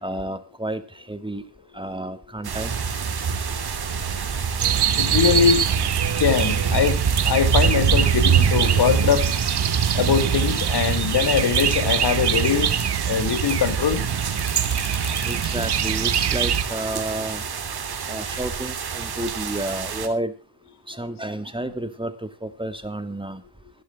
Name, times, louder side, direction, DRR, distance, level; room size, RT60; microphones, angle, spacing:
voice 1, 0.0-1.4 1.7-3.8 15.2-17.4 18.1-20.3 20.9-23.4, right 1 dB, 15° right, 2.4 m, -31 dB
sound 1, 2.4-20.1, right 6 dB, 70° right, 2.9 m, -26 dB
sound 2, 4.6-16.6, right 8 dB, 90° right, 1.8 m, -24 dB
voice 2, 5.0-5.7 6.2-9.3 9.9-12.7 13.1-14.0, left 7 dB, 85° left, 2.4 m, -22 dB
sound 3, 14.4-15.7, left 4 dB, 55° left, 5.6 m, -39 dB
26.5 x 12.0 x 2.3 m
cardioid pair, 60°, 39 cm